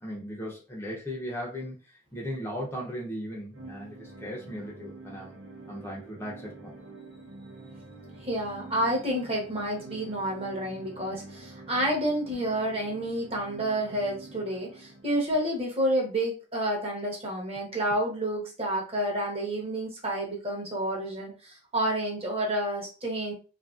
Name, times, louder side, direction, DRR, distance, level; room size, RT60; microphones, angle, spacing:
voice 1, 0.0-5.4 5.7-6.8, equal, 10° left, -3 dB, 0.6 m, -37 dB
sound 1, 3.5-15.5, right 2 dB, 75° right, 0.6 m, -47 dB
voice 2, 8.2-23.3, right 1 dB, 30° right, -1 dB, 0.8 m, -29 dB
2.7 x 2.5 x 2.4 m, 0.34 s
head